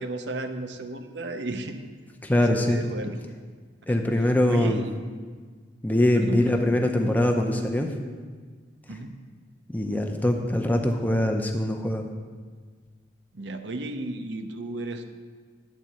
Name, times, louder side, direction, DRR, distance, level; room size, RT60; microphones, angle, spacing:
voice 1, 0.0-1.8 2.4-3.2 4.5-4.9 6.1-6.5 8.9-9.2 13.3-15.1, right 2 dB, 70° right, 8 dB, 0.7 m, -33 dB
voice 2, 2.2-2.8 3.9-4.8 5.8-7.9 8.9-9.0 9.7-12.0, left 1 dB, 10° left, 3 dB, 0.6 m, -23 dB
10.5 x 4.0 x 7.5 m, 1.5 s
head